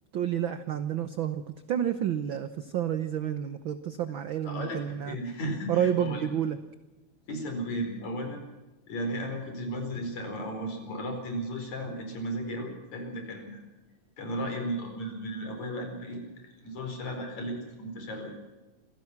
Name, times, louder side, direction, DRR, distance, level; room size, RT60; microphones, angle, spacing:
voice 1, 0.1-1.4 1.7-5.2 5.7-6.6, right 9 dB, 75° right, 11 dB, 1.1 m, -29 dB
voice 2, 4.5-4.8 5.1-6.2 7.3-8.4 8.9-13.6 14.2-18.4, equal, 65° left, 4 dB, 5.9 m, -35 dB
26.5 x 17.0 x 6.0 m, 1.1 s
omnidirectional pair, 3.5 m